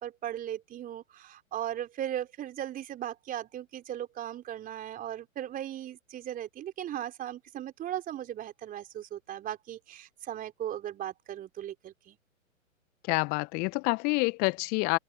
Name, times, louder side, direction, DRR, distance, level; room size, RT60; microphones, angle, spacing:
voice 1, 0.0-12.2, right 11 dB, 20° right, 4.0 m, -37 dB
voice 2, 13.1-15.0, left 29 dB, 20° left, 0.8 m, -27 dB
open air
figure-of-eight pair, 115°, 41 cm